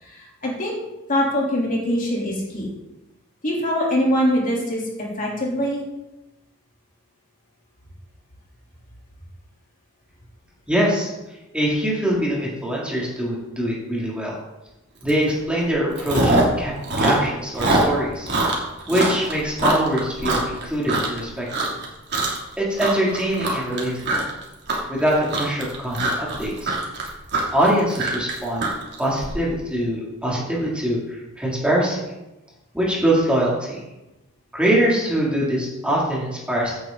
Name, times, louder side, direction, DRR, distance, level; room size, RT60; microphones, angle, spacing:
voice 1, 0.0-0.8 1.1-2.7 3.4-4.8 5.2-5.9, equal, 40° left, -3 dB, 3.5 m, -23 dB
voice 2, 10.7-11.1 11.5-14.4 15.0-18.3 18.9-21.7 22.6-24.3 24.9-26.7 27.5-28.7 29.0-32.1 32.7-33.8 34.5-36.8, right 1 dB, 5° right, -5 dB, 3.0 m, -23 dB
Chewing mastication, 15.1-15.3 15.6-16.6 16.8-21.2 21.5-21.9 22.1-22.5 22.8-29.3, right 2 dB, 50° right, 3.0 m, -23 dB
16.0 x 8.8 x 4.0 m, 0.99 s
head